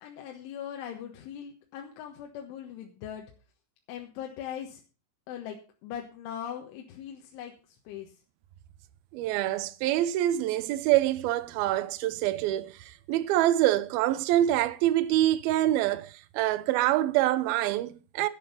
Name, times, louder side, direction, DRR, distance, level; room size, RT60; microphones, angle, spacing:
voice 1, 0.0-3.3 3.9-4.8 5.3-8.1, left 9 dB, 85° left, 3.8 m, -40 dB
voice 2, 9.1-18.3, right 14 dB, 90° right, 2.1 m, -26 dB
12.0 x 8.7 x 5.5 m
omnidirectional pair, 5.3 m